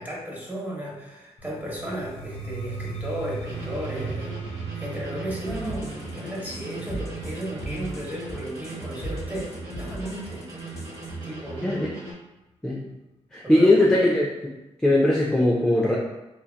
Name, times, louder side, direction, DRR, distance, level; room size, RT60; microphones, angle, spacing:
voice 1, 0.0-9.5 9.8-10.4 11.2-11.7 13.4-14.1, right 1 dB, 15° right, -5 dB, 1.0 m, -34 dB
sound 1, 1.4-11.2, right 4 dB, 55° left, 0.7 m, -39 dB
sound 2, 3.4-12.1, right 2 dB, 75° right, 0.9 m, -38 dB
sound 3, 5.5-11.1, right 1 dB, 25° left, 0.9 m, -38 dB
voice 2, 11.6-11.9 12.6-12.9 13.3-14.5 14.8-16.0, left 1 dB, 5° left, -3 dB, 0.4 m, -20 dB
2.6 x 2.2 x 2.2 m, 1.0 s
cardioid pair, 60°, 12 cm